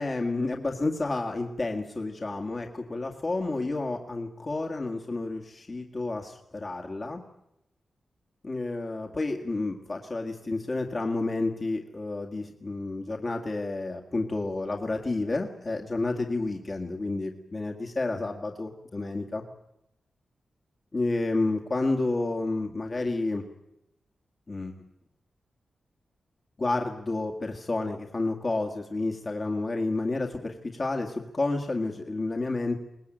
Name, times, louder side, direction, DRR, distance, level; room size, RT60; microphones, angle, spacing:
voice 1, 0.0-7.2 8.4-19.4 20.9-23.4 24.5-24.7 26.6-32.8, left 2 dB, 35° left, 1 dB, 2.0 m, -30 dB
23.0 x 19.5 x 9.1 m, 0.85 s
wide cardioid pair, 105°, 0 cm